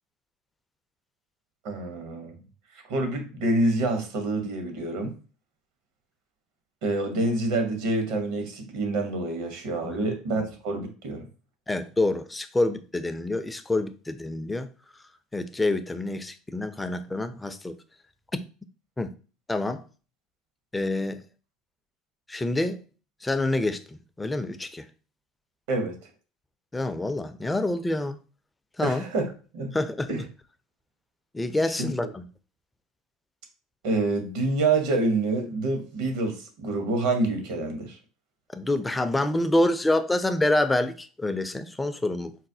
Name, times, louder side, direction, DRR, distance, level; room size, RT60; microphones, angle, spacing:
voice 1, 1.6-2.4 2.9-5.2 6.8-11.2 25.7-26.0 28.8-29.3 29.5-29.7 30.1-30.2 31.8-31.9 33.8-38.0, right 2 dB, 65° right, 0.9 m, -27 dB
voice 2, 9.8-10.1 11.7-14.7 15.3-17.8 18.3-18.4 19.0-19.1 19.5-19.8 20.7-21.2 22.3-22.8 23.2-24.9 26.7-28.2 28.8-29.0 29.7-30.1 31.3-32.2 38.5-42.4, left 2 dB, 10° left, 0.4 m, -27 dB
4.0 x 2.1 x 2.6 m
hypercardioid pair, 85°, 0 cm